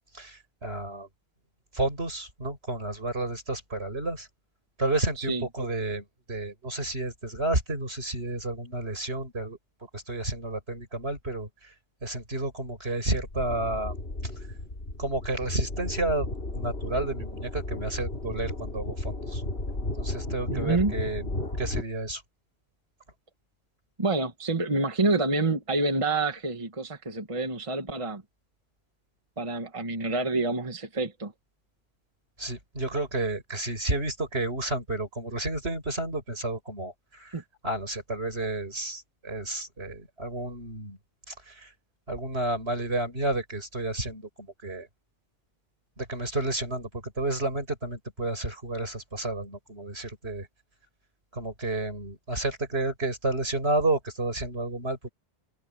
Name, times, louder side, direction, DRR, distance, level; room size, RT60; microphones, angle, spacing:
voice 1, 0.1-1.1 1.7-4.3 4.8-9.6 9.9-11.7 12.0-13.9 14.4-14.5 15.0-16.3 16.5-19.4 20.0-21.3 21.6-22.2 32.4-41.0 41.3-41.7 42.1-44.9 46.0-50.5 51.3-55.1, right 2 dB, 80° right, 7.2 m, -31 dB
sound 1, 13.1-21.8, left 2 dB, 75° left, 3.6 m, -34 dB
voice 2, 20.5-20.9 24.0-28.2 29.4-31.3 37.3-37.4, right 3 dB, 30° right, 1.5 m, -27 dB
omnidirectional pair, 1.1 m